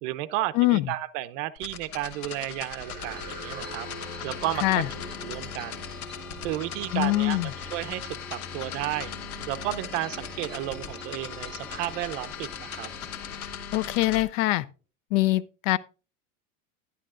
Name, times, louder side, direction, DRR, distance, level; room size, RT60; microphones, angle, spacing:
voice 1, 0.0-3.9 4.2-4.8 5.2-5.9 6.4-7.4 7.7-9.1 9.5-12.9, right 15 dB, 60° right, 0.7 m, -32 dB
voice 2, 0.5-0.9 4.6-4.9 6.9-7.5 13.7-14.7 15.1-15.8, left 18 dB, 60° left, 0.5 m, -23 dB
sound 1, 1.6-14.2, left 8 dB, 85° left, 1.4 m, -39 dB
sound 2, 2.7-14.2, left 1 dB, 20° right, 4.1 m, -44 dB
sound 3, 3.0-13.5, right 1 dB, ahead, 0.6 m, -51 dB
11.0 x 11.0 x 2.5 m
supercardioid pair, 135°, 41 cm